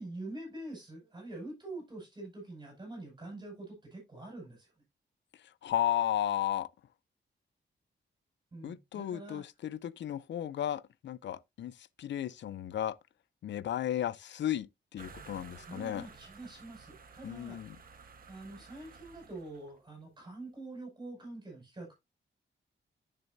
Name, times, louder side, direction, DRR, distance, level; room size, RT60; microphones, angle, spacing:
voice 1, 0.0-4.7 8.5-9.4 15.7-17.6 17.8-21.9, right 2 dB, 20° right, 5.7 m, -45 dB
voice 2, 5.6-6.7 8.6-11.7 12.0-12.9 13.4-14.7 14.9-16.0 17.2-17.7, left 11 dB, 65° left, 0.5 m, -34 dB
sound 1, 15.0-19.8, right 5 dB, 45° right, 1.2 m, -54 dB
10.0 x 6.7 x 2.6 m
wide cardioid pair, 175°, 20 cm